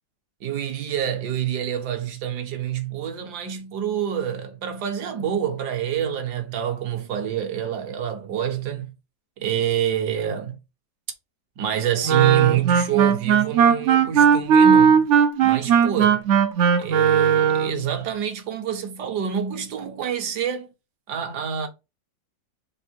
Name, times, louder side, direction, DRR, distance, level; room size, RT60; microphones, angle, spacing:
voice 1, 0.4-8.9 9.4-10.6 11.6-15.1 15.4-16.2 16.8-20.7 21.1-21.7, right 9 dB, 70° right, 1.3 m, -27 dB
Wind instrument woodwind instrument, 12.0-17.8, right 7 dB, 85° right, 0.6 m, -17 dB
3.6 x 2.6 x 4.2 m
omnidirectional pair, 1.9 m